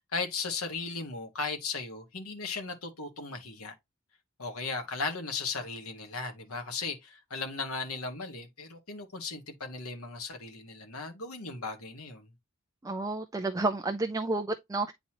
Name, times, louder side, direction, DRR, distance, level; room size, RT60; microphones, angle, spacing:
voice 1, 0.1-3.7 4.4-12.3, left 4 dB, 75° left, 1.6 m, -36 dB
voice 2, 12.8-14.9, right 2 dB, 15° right, 0.5 m, -30 dB
9.2 x 4.0 x 2.9 m
head